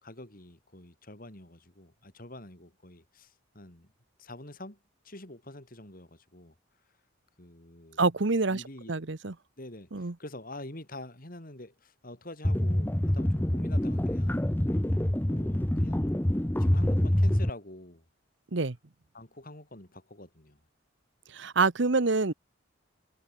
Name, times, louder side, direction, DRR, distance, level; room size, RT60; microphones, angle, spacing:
voice 1, 0.0-3.9 4.2-4.8 5.0-6.5 7.4-8.0 8.5-9.0 9.6-14.4 15.3-16.2 16.6-18.0 19.1-20.6, left 1 dB, 45° left, 3.4 m, -46 dB
voice 2, 8.0-8.6 8.9-9.3 9.9-10.1 18.5-18.8 21.3-22.3, right 3 dB, 60° right, 1.0 m, -26 dB
sound 1, 12.4-17.5, left 1 dB, 10° left, 0.6 m, -26 dB
head